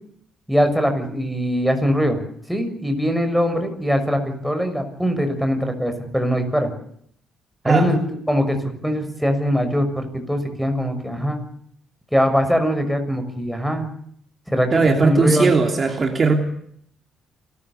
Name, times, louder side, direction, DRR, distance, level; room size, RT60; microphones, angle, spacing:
voice 1, 0.5-2.2 2.5-6.7 7.6-11.4 12.1-13.9 14.5-15.6, equal, ahead, 7 dB, 6.3 m, -22 dB
voice 2, 14.7-16.3, right 4 dB, 40° right, 4 dB, 3.2 m, -18 dB
28.0 x 14.0 x 8.3 m, 0.67 s
supercardioid pair, 70°, 0 cm